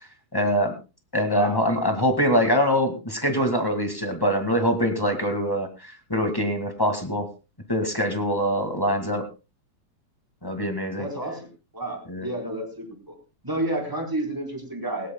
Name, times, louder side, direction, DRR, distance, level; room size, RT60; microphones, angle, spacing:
voice 1, 0.3-0.7 1.1-7.3 7.7-9.2 10.4-11.1 12.1-12.3, equal, 10° left, 5 dB, 1.4 m, -24 dB
voice 2, 1.3-1.7 9.1-9.2 10.9-11.5 11.7-13.2 13.4-15.1, right 1 dB, 5° right, 1 dB, 4.1 m, -31 dB
18.5 x 17.5 x 2.3 m, 0.30 s
omnidirectional pair, 3.4 m